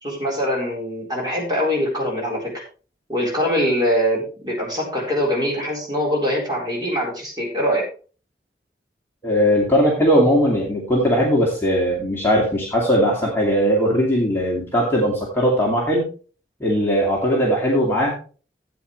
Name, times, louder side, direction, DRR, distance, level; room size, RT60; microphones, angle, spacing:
voice 1, 0.0-2.5 3.1-7.8, equal, 25° right, -2 dB, 4.3 m, -23 dB
voice 2, 9.2-16.0 16.6-18.1, equal, 15° left, -4 dB, 2.4 m, -19 dB
13.5 x 8.7 x 3.2 m, 0.38 s
head